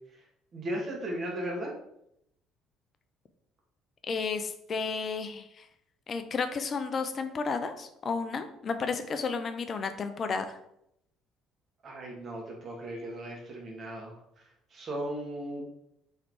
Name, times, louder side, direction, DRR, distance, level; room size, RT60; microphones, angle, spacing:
voice 1, 0.5-1.7 11.8-15.7, right 1 dB, 45° right, -1 dB, 1.2 m, -37 dB
voice 2, 4.1-5.7 6.1-10.6, left 5 dB, 40° left, 9 dB, 0.4 m, -32 dB
3.9 x 3.1 x 3.0 m, 0.78 s
figure-of-eight pair, 55°, 0 cm